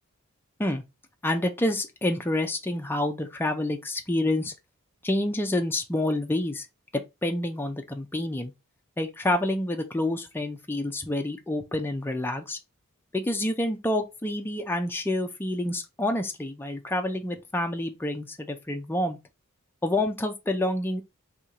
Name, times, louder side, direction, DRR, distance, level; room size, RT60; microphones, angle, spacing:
voice 1, 1.2-4.5 5.0-6.7 7.2-8.5 9.0-12.6 13.1-19.2 19.8-21.0, left 1 dB, 10° left, 0.4 m, -28 dB
2.7 x 2.6 x 4.3 m
head